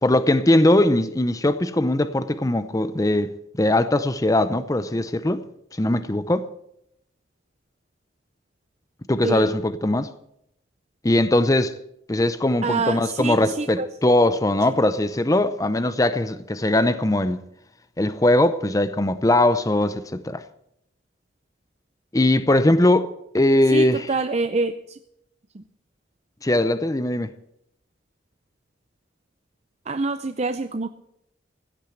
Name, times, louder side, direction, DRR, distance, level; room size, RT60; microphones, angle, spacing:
voice 1, 0.0-3.3 3.6-5.4 5.8-6.5 9.1-10.1 11.0-11.8 12.1-17.4 18.0-20.4 22.1-24.1 26.4-27.3, left 1 dB, 20° left, 0.6 m, -20 dB
voice 2, 12.6-13.9 23.7-25.0 25.5-25.6 29.9-30.9, right 3 dB, 35° right, 0.6 m, -26 dB
16.0 x 9.0 x 7.8 m
head